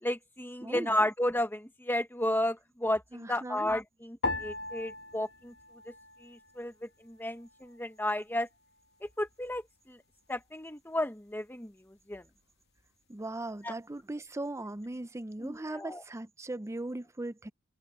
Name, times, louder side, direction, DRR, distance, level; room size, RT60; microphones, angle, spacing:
voice 1, 0.0-5.5 5.9-6.0 6.2-8.5 9.0-10.0 10.3-11.7 12.1-12.2 13.6-13.7 15.4-16.0, left 1 dB, 10° left, 1.2 m, -33 dB
voice 2, 0.6-0.9 3.1-3.7 13.1-17.5, right 2 dB, 15° right, 0.5 m, -38 dB
sound 1, 4.2-6.8 7.0-7.9 8.5-9.0, left 2 dB, 55° left, 1.4 m, -39 dB
open air
head